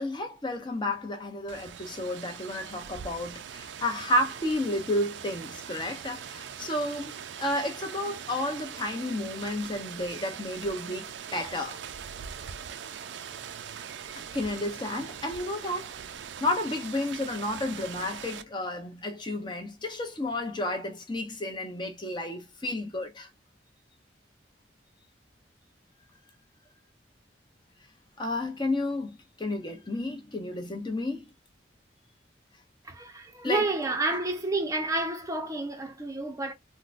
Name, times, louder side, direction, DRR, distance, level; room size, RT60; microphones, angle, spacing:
voice 1, 0.0-11.8 14.3-16.0 16.4-23.3 28.2-31.3 33.4-33.6, left 1 dB, 25° left, 0.7 m, -31 dB
Rain, 1.5-18.4, right 8 dB, 70° right, 0.4 m, -41 dB
voice 2, 32.8-36.5, right 2 dB, 15° right, 0.5 m, -30 dB
3.7 x 2.1 x 2.4 m
head